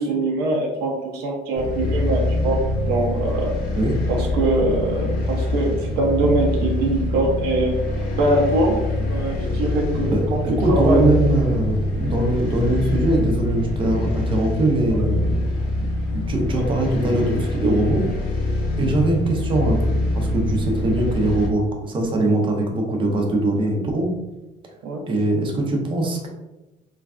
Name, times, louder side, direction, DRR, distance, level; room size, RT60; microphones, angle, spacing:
voice 1, 0.0-2.6 2.9-3.5 4.1-7.8 8.2-10.4 10.7-11.0 14.9-15.1 24.8-25.0, right 2 dB, 75° right, -1 dB, 0.6 m, -23 dB
sound 1, 1.6-21.5, left 2 dB, 70° left, 0.7 m, -24 dB
voice 2, 10.1-15.4 16.1-18.0 18.8-24.1 25.1-26.3, right 2 dB, 30° right, 1 dB, 0.5 m, -22 dB
3.2 x 2.3 x 2.4 m, 1.0 s
cardioid pair, 155°, 17 cm